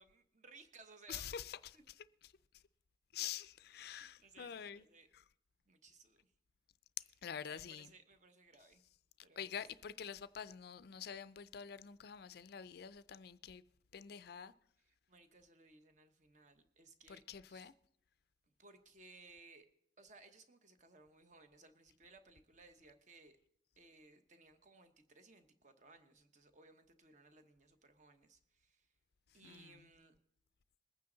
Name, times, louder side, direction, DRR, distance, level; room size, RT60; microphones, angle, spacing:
voice 1, 0.0-1.3 1.7-1.8 3.7-5.1 5.7-6.3 7.0-7.1 7.4-8.8 9.2-9.5 14.8-17.7 18.6-19.7 20.0-23.4 23.8-28.9 29.3-30.1, right 3 dB, 40° right, 1.1 m, -62 dB
voice 2, 1.1-1.8 3.1-4.8 5.1-5.2 7.2-7.9 9.4-13.6 13.9-14.5 17.1-17.7 29.4-29.8, left 8 dB, 55° left, 0.4 m, -47 dB
21.5 x 9.3 x 3.9 m
head